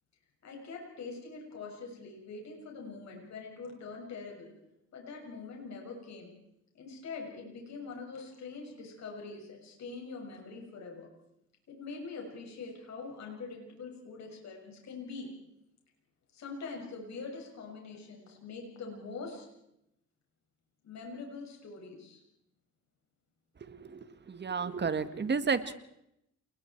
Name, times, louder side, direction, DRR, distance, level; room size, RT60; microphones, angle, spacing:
voice 1, 0.4-4.5 4.9-6.3 6.7-11.1 11.7-15.3 16.3-19.5 20.8-22.2, left 4 dB, 65° left, 1 dB, 6.8 m, -44 dB
voice 2, 23.6-24.0 24.3-25.7, right 5 dB, 35° right, 11 dB, 1.7 m, -32 dB
29.0 x 21.0 x 4.6 m, 0.81 s
cardioid pair, 90°, 30 cm